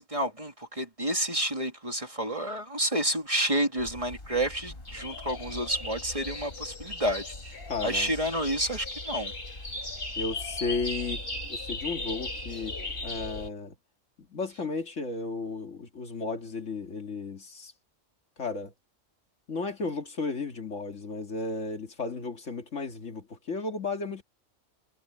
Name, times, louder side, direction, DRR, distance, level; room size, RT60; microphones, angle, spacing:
voice 1, 0.0-7.3 7.8-9.3, right 1 dB, 25° right, 2.8 m, -29 dB
sound 1, 3.8-13.5, left 2 dB, 50° left, 4.2 m, -37 dB
voice 2, 7.7-8.1 10.2-11.2 11.5-12.7 13.0-13.7 14.3-17.7 18.4-18.7 19.5-24.2, left 3 dB, 75° left, 2.4 m, -34 dB
omnidirectional pair, 1.3 m